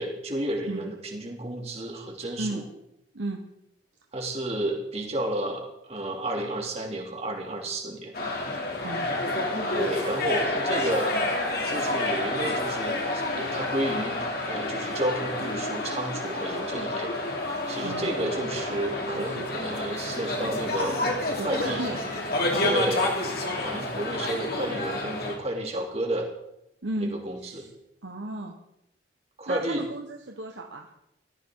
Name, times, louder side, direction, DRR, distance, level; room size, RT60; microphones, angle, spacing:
voice 1, 0.0-2.6 4.1-8.1 9.7-11.1 11.7-14.2 14.5-17.1 17.7-21.8 22.6-23.4 23.6-26.3 27.0-27.7 29.4-29.8, right 1 dB, 35° right, 1 dB, 2.8 m, -31 dB
sound 1, 8.1-25.3, left 2 dB, 60° left, 2.9 m, -29 dB
voice 2, 21.4-22.0 22.5-22.8 26.8-27.7 28.0-28.5 29.5-30.9, right 2 dB, 85° right, 2 dB, 1.3 m, -34 dB
18.0 x 14.0 x 3.9 m, 0.83 s
head